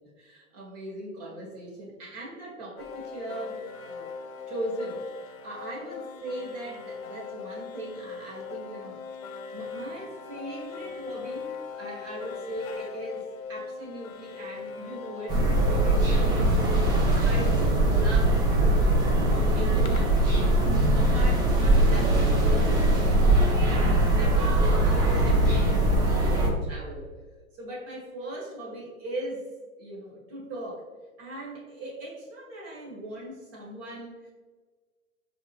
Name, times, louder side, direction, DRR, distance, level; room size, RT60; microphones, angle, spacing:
voice 1, 0.2-4.1 4.5-9.0 9.5-15.4 15.7-16.6 17.1-20.2 21.0-27.1 27.6-29.4 29.8-30.8 31.2-34.3, right 1 dB, 35° right, -2 dB, 1.2 m, -39 dB
sound 1, 2.8-20.8, left 5 dB, 75° left, 0.7 m, -41 dB
sound 2, 15.3-26.5, right 1 dB, 10° right, 0.3 m, -21 dB
4.4 x 2.9 x 2.8 m, 1.4 s
hypercardioid pair, 115°, 43 cm